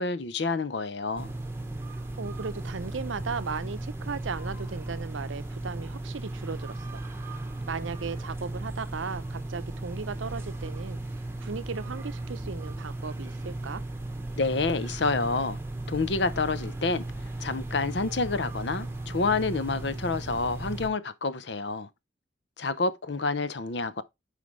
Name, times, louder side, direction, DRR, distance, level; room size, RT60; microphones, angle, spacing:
voice 1, 0.0-1.3 14.4-15.6 15.9-17.1 17.4-21.9 22.6-24.0, left 3 dB, 60° left, 0.8 m, -28 dB
sound 1, 1.2-20.9, right 2 dB, 15° right, 1.1 m, -36 dB
voice 2, 1.9-7.0 7.7-11.0 11.4-13.8, right 5 dB, 85° right, 0.7 m, -36 dB
9.2 x 5.0 x 3.2 m
head